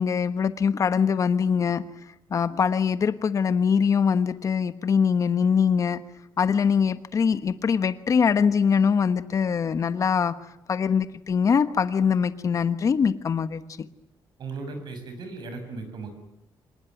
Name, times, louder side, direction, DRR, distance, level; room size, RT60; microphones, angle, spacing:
voice 1, 0.0-1.8 2.3-6.0 6.4-10.3 10.7-13.6, left 6 dB, 40° left, 12 dB, 1.3 m, -23 dB
voice 2, 14.4-16.1, right 3 dB, 60° right, 8 dB, 6.6 m, -36 dB
26.0 x 20.0 x 9.3 m, 0.83 s
cardioid pair, 145°, 8 cm